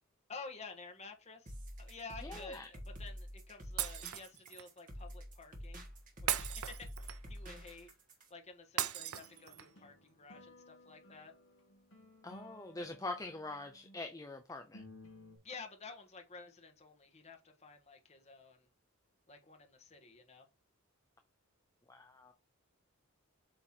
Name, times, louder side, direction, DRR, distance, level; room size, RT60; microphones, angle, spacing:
voice 1, 0.3-5.8 6.2-7.9 8.3-11.3 15.4-18.7 19.3-20.5, left 4 dB, 30° left, 1.2 m, -51 dB
sound 1, 1.5-8.3, equal, 40° right, 1.5 m, -48 dB
voice 2, 2.2-2.7 12.2-14.8 21.9-22.3, left 2 dB, 15° left, 0.5 m, -44 dB
Shatter, 3.8-4.7 6.3-7.4 8.8-9.8, right 11 dB, 80° right, 0.6 m, -38 dB
sound 2, 9.0-14.0 14.5-15.4, left 1 dB, 60° left, 1.8 m, -58 dB
7.7 x 3.0 x 4.3 m
head